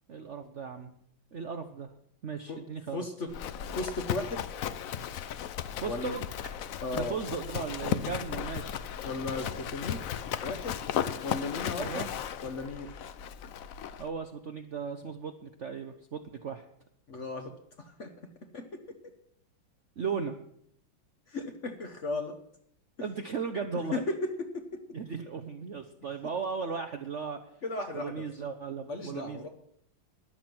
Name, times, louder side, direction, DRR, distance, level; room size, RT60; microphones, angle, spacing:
voice 1, 0.1-0.9 1.3-1.9 2.2-3.1 5.8-6.2 6.9-8.8 11.7-12.1 14.0-16.7 20.0-20.4 23.0-24.0 24.9-27.4 27.9-29.5, right 5 dB, 55° right, 6 dB, 0.8 m, -36 dB
voice 2, 2.9-3.3 3.7-4.4 5.8-6.2 6.8-7.2 9.0-10.0 10.4-10.8 11.2-12.0 12.4-13.0 17.1-17.5 17.8-18.1 18.5-18.8 21.3-22.3 23.9-24.8 27.6-28.3 28.9-29.5, left 2 dB, 45° left, 6 dB, 1.1 m, -35 dB
Livestock farm animals working animals, 3.3-14.1, left 9 dB, 75° left, 0.7 m, -35 dB
13.0 x 11.0 x 6.0 m, 0.71 s
omnidirectional pair, 2.2 m